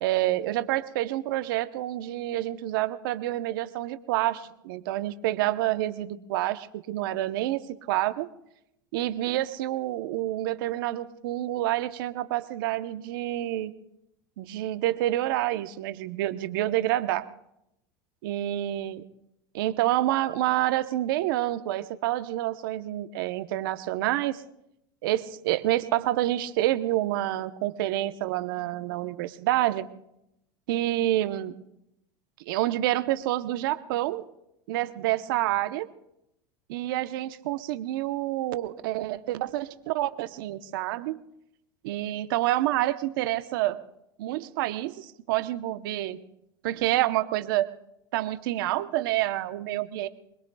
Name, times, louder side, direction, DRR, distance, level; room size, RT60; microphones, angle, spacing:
voice 1, 0.0-7.6 7.9-8.3 8.9-13.7 14.4-17.2 18.2-19.0 19.5-24.4 25.0-29.8 30.7-31.5 32.5-34.2 34.7-35.9 36.7-41.2 41.8-43.8 44.2-46.2 46.6-47.7 48.1-50.1, right 15 dB, 75° right, 11 dB, 0.9 m, -28 dB
25.0 x 21.5 x 2.4 m, 0.81 s
hypercardioid pair, 100°, 12 cm